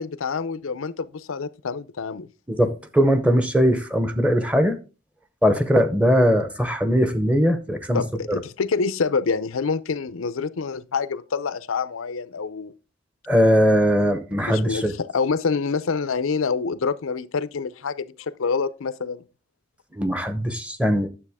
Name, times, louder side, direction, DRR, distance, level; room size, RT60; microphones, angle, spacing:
voice 1, 0.0-2.3 7.9-12.7 14.5-19.2, left 5 dB, 90° left, 0.6 m, -26 dB
voice 2, 2.5-4.8 5.4-8.0 8.3-8.4 13.3-14.9 19.9-21.1, equal, 5° right, 0.8 m, -20 dB
9.8 x 7.2 x 3.5 m
head